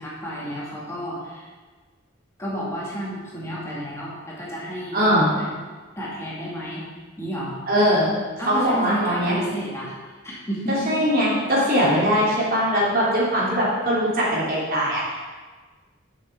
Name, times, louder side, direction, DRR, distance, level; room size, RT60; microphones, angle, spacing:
voice 1, 0.0-1.5 2.4-5.0 5.4-5.5 6.0-6.8 7.2-7.6 8.4-9.9 10.2-11.0, right 1 dB, 15° left, -6 dB, 2.3 m, -31 dB
voice 2, 4.9-5.3 7.7-8.1 8.5-9.3 10.7-15.2, equal, 50° right, -6 dB, 3.3 m, -21 dB
8.2 x 6.6 x 7.1 m, 1.4 s
head